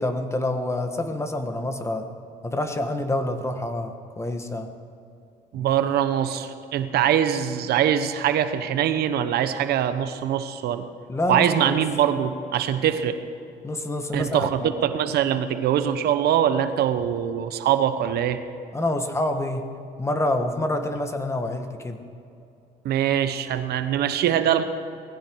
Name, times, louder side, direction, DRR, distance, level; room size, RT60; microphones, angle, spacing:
voice 1, 0.0-2.1 2.4-4.7 5.6-5.7 11.1-11.7 13.6-14.7 18.7-19.7 20.0-22.0, left 1 dB, 15° left, 7 dB, 1.4 m, -27 dB
voice 2, 5.5-10.9 11.3-13.2 14.1-18.4 22.8-24.6, right 10 dB, 70° right, 10 dB, 1.0 m, -23 dB
19.0 x 15.5 x 4.7 m, 2.6 s
cardioid pair, 110°, 17 cm